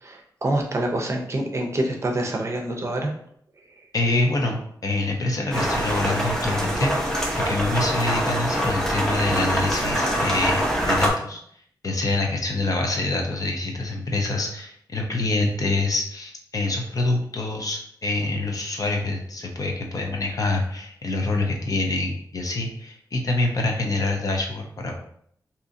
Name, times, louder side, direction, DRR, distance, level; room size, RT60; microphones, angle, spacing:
voice 1, 0.0-3.1, right 1 dB, 40° right, 1 dB, 0.6 m, -26 dB
voice 2, 3.9-11.4 11.8-25.0, left 2 dB, 50° left, 1 dB, 0.6 m, -26 dB
sound 1, 5.5-11.1, equal, 5° left, 0.7 m, -24 dB
3.7 x 2.7 x 2.6 m, 0.66 s
wide cardioid pair, 115°, 8 cm